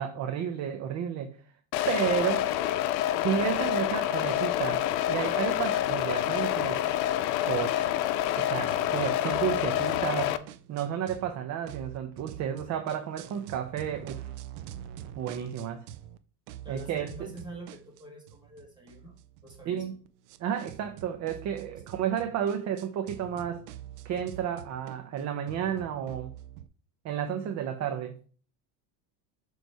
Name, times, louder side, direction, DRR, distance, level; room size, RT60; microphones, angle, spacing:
voice 1, 0.0-1.4 1.9-2.5 3.2-6.8 7.4-7.8 8.4-10.4 10.7-14.3 15.2-15.8 16.7-17.3 19.7-19.9 20.4-23.6 24.0-26.3 27.0-28.2, right 9 dB, 35° right, 0.6 m, -32 dB
sound 1, 1.7-10.4, left 12 dB, 90° left, 0.7 m, -27 dB
sound 2, 8.7-11.3 11.6-16.2 16.5-26.7, right 11 dB, 75° right, 0.6 m, -46 dB
voice 2, 16.6-19.2 19.4-20.0, equal, 10° right, 2.0 m, -46 dB
6.7 x 3.2 x 4.5 m
supercardioid pair, 130°, 49 cm